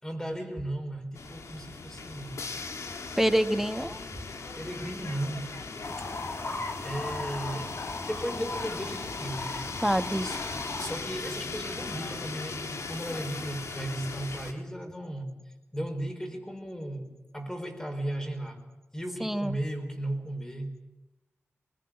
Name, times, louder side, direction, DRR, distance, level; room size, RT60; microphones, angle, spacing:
voice 1, 0.0-2.4 4.5-5.5 6.0-6.1 6.8-7.8 8.0-9.6 10.2-10.4 10.8-15.3 15.7-18.6 18.9-20.8, right 1 dB, 10° left, 4 dB, 4.8 m, -35 dB
sound 1, 1.2-14.5, left 4 dB, 85° left, 2.5 m, -39 dB
voice 2, 3.2-4.0 9.8-10.3 19.2-19.6, equal, 5° right, 10 dB, 1.2 m, -26 dB
sound 2, 5.8-11.0, left 3 dB, 55° left, 2.0 m, -37 dB
23.5 x 21.0 x 8.9 m, 1.0 s
wide cardioid pair, 105°, 5 cm